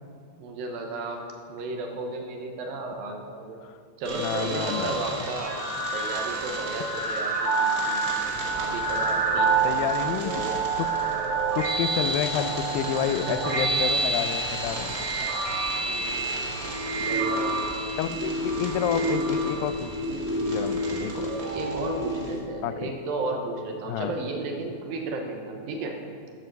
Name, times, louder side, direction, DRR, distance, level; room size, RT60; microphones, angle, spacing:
voice 1, 0.4-1.2 1.5-3.6 4.0-5.6 5.9-8.0 8.6-10.7 13.0-13.8 14.5-14.6 15.7-17.9 21.5-26.0, right 3 dB, 75° right, 2 dB, 2.9 m, -34 dB
sound 1, 4.0-22.3, right 3 dB, 30° right, 2.2 m, -28 dB
voice 2, 4.2-5.3 9.6-10.4 10.8-10.9 11.5-15.0 18.0-19.9 20.3-21.3 22.6-22.9 23.9-24.1, left 10 dB, 80° left, 11 dB, 2.3 m, -30 dB
sound 2, 8.2-22.5, equal, 55° left, 3.4 m, -44 dB
13.0 x 7.9 x 6.8 m, 2.3 s
omnidirectional pair, 4.3 m